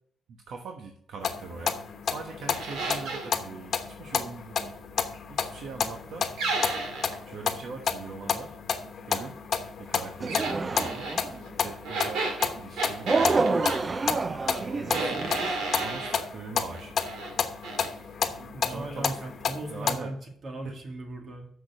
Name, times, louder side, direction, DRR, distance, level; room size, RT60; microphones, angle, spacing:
voice 1, 0.3-4.8 5.3-6.3 7.3-8.5 9.1-9.4 9.8-11.1 11.6-12.3 12.5-14.0 14.6-15.4 15.8-17.0 18.2-19.2 19.7-20.1 20.6-20.8, right 4 dB, 70° right, 3 dB, 1.1 m, -42 dB
sound 1, 1.2-20.0, left 6 dB, 60° left, 1.1 m, -32 dB
sound 2, 2.5-3.3 6.4-7.2 10.3-11.2 11.8-13.8 14.9-16.2 16.7-17.3 17.6-17.9, right 3 dB, 90° right, 1.9 m, -32 dB
sound 3, 10.2-11.4 13.1-15.6, right 3 dB, 35° right, 0.4 m, -28 dB
voice 2, 18.5-21.5, right 1 dB, 55° right, 3 dB, 2.2 m, -38 dB
7.0 x 6.5 x 6.2 m, 0.66 s
cardioid pair, 85°, 0 cm